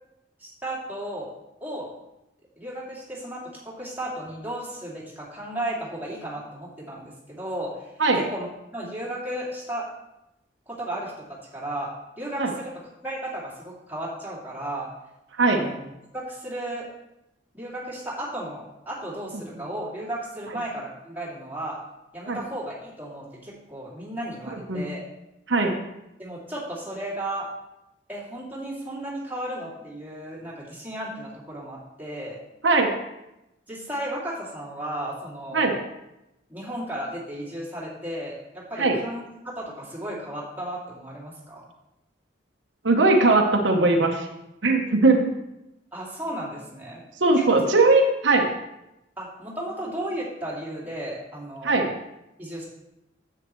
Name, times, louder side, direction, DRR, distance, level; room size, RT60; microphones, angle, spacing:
voice 1, 0.4-1.3 1.6-1.9 2.6-7.9 8.3-8.5 8.7-9.9 10.7-11.9 12.2-12.7 13.0-14.9 15.5-15.8 16.1-16.9 17.5-21.8 22.1-25.0 26.2-27.5 28.1-32.4 33.7-35.7 36.5-41.6 45.9-47.0 47.3-47.6 49.2-51.8 52.4-52.7, right 1 dB, 10° right, -7 dB, 2.7 m, -34 dB
voice 2, 19.3-19.6 22.3-22.4 24.7-24.8 25.5-25.7 32.6-32.9 35.5-35.8 38.8-38.9 42.8-44.3 44.6-45.3 47.2-48.5 51.6-51.9, right 3 dB, 90° right, 3 dB, 1.0 m, -20 dB
10.0 x 8.0 x 3.2 m, 0.91 s
head